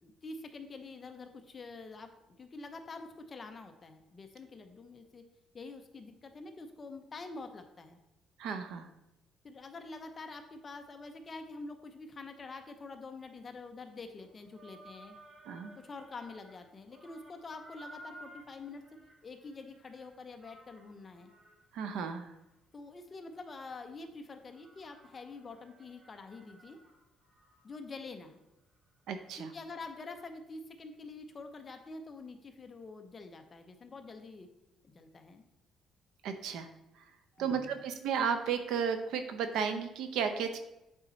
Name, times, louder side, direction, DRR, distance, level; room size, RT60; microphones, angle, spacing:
voice 1, 0.0-2.1 2.4-5.2 5.5-8.0 9.4-15.2 15.8-21.3 22.7-26.8 27.6-28.4 29.4-34.5 34.8-35.4 37.4-37.9, left 3 dB, 30° left, 6 dB, 0.8 m, -46 dB
voice 2, 8.4-8.9 15.5-15.7 21.7-22.3 29.1-29.5 36.2-36.7 37.4-40.6, right 6 dB, 85° right, 8 dB, 0.7 m, -33 dB
sound 1, 14.2-16.6 16.9-24.0 24.5-27.8 28.1-28.2 28.8-28.9, right 1 dB, 35° right, 2.2 m, -57 dB
8.9 x 4.2 x 4.0 m, 0.91 s
cardioid pair, 130°, 0 cm